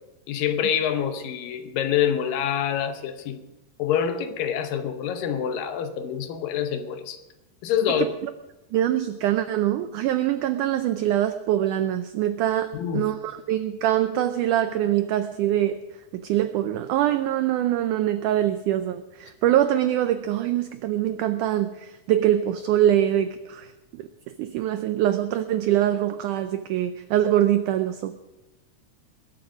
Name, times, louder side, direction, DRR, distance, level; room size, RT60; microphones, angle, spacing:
voice 1, 0.3-3.4 3.8-7.2 7.6-8.1 12.7-13.1, left 9 dB, 75° left, 9 dB, 2.4 m, -26 dB
voice 2, 8.0-8.3 8.7-15.8 16.1-23.7 24.0-28.2, right 12 dB, 90° right, 10 dB, 1.8 m, -24 dB
21.0 x 7.9 x 6.2 m, 1.0 s
omnidirectional pair, 4.3 m